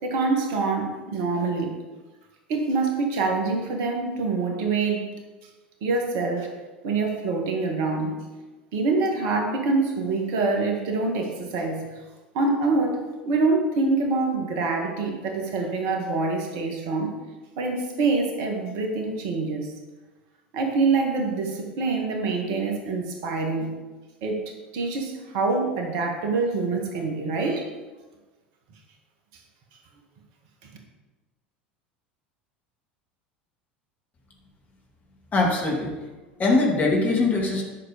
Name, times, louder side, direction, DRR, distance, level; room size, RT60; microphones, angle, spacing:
voice 1, 0.0-1.7 2.5-5.1 5.8-6.5 6.8-8.2 8.7-12.0 12.3-17.2 17.6-19.7 20.5-23.7 24.2-27.7, right 3 dB, 55° right, 2 dB, 1.9 m, -25 dB
voice 2, 35.3-35.9 36.4-37.6, left 3 dB, 30° left, -1 dB, 2.8 m, -21 dB
10.5 x 6.4 x 5.3 m, 1.2 s
figure-of-eight pair, 75°, 6 cm